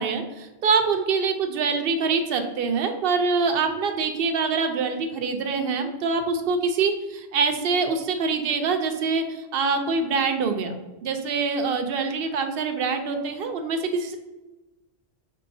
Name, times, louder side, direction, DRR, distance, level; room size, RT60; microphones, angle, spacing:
voice 1, 0.0-10.8 11.0-14.1, right 4 dB, 65° right, 6 dB, 0.8 m, -25 dB
5.5 x 3.7 x 2.6 m, 1.1 s
omnidirectional pair, 1.1 m